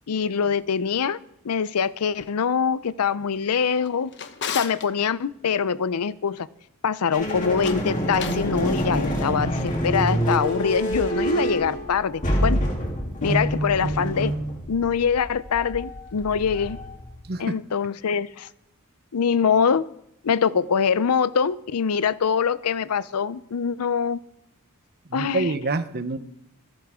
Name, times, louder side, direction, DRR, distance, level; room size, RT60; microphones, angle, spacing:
voice 1, 0.1-1.2 1.4-4.1 4.5-6.5 6.8-12.6 13.2-14.3 14.7-16.8 17.4-18.5 19.1-19.8 20.2-24.2 25.1-25.5, left 6 dB, 80° left, 17 dB, 0.5 m, -24 dB
Drawer open or close, 3.7-4.9 7.5-8.5, left 7 dB, 55° left, 1.0 m, -34 dB
sound 1, 7.1-17.2, equal, 35° left, 3.1 m, -27 dB
voice 2, 17.3-17.6 25.1-26.2, right 3 dB, 45° right, 11 dB, 0.9 m, -26 dB
25.5 x 10.5 x 3.7 m, 0.80 s
head